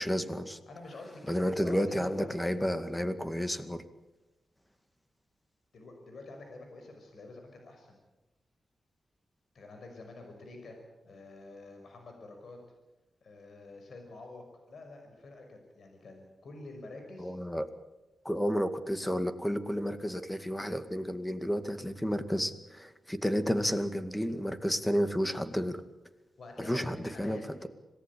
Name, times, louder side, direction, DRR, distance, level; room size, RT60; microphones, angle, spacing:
voice 1, 0.0-0.6 1.3-3.8 17.2-17.7 18.2-25.8 26.6-27.7, equal, 5° left, 9 dB, 2.1 m, -31 dB
voice 2, 0.7-2.7 5.7-8.0 9.5-10.8 11.0-12.6 13.2-17.3 26.4-27.4, left 2 dB, 70° left, 3 dB, 5.8 m, -47 dB
26.5 x 18.0 x 8.6 m, 1.0 s
cardioid pair, 90°, 0 cm